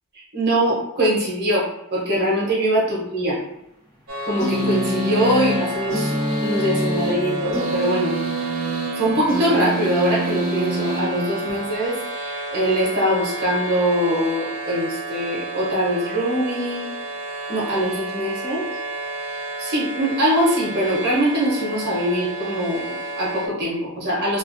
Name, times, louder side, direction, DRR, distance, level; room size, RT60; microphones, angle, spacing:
voice 1, 0.1-3.4 4.2-6.1 6.4-8.2 8.9-12.0 12.5-16.9 17.5-18.7 19.6-24.4, right 1 dB, 45° right, -6 dB, 0.9 m, -22 dB
sound 1, 4.1-23.5, right 1 dB, 70° right, 0.6 m, -31 dB
sound 2, 4.4-11.8, right 1 dB, 20° left, 0.8 m, -26 dB
2.5 x 2.2 x 2.6 m, 0.83 s
head